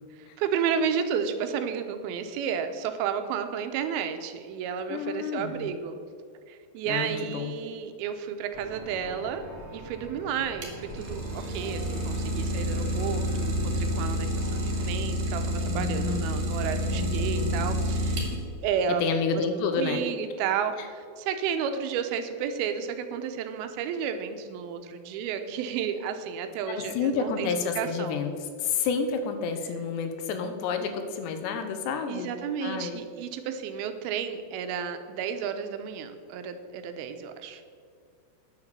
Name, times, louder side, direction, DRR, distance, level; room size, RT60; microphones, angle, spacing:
voice 1, 0.2-6.0 6.5-9.4 9.7-18.2 18.6-19.0 19.3-27.5 27.8-28.2 32.1-37.7, right 7 dB, 80° right, 8 dB, 2.4 m, -32 dB
voice 2, 4.9-5.7 6.9-7.5 15.7-16.3 16.9-17.7 18.9-20.0 26.7-32.3 32.6-33.0, left 5 dB, 85° left, 7 dB, 3.0 m, -30 dB
sound 1, 8.5-14.9, right 1 dB, 5° right, 2.3 m, -43 dB
Idling, 10.4-18.7, equal, 45° right, 2.3 m, -29 dB
9.9 x 6.9 x 6.7 m, 2.2 s
omnidirectional pair, 4.9 m